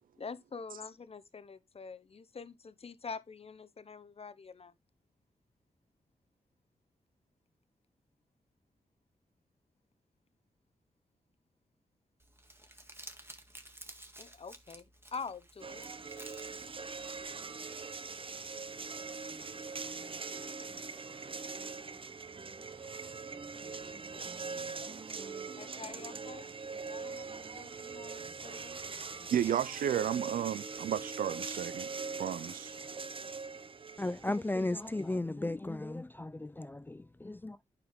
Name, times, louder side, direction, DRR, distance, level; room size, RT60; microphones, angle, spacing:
voice 1, 0.2-4.7 14.2-15.8 22.7-22.8 25.6-26.6 26.9-27.3 27.5-29.3, left 5 dB, 45° left, 0.9 m, -46 dB
Crumpling crinkling, 12.2-17.3, right 1 dB, 15° right, 1.7 m, -53 dB
sound 1, 15.6-35.2, right 4 dB, 40° right, 0.7 m, -42 dB
voice 2, 29.3-31.9 32.2-32.7, right 10 dB, 80° right, 0.4 m, -32 dB
voice 3, 34.0-37.6, left 2 dB, 15° left, 0.4 m, -35 dB
9.4 x 4.9 x 3.5 m
cardioid pair, 55°, 14 cm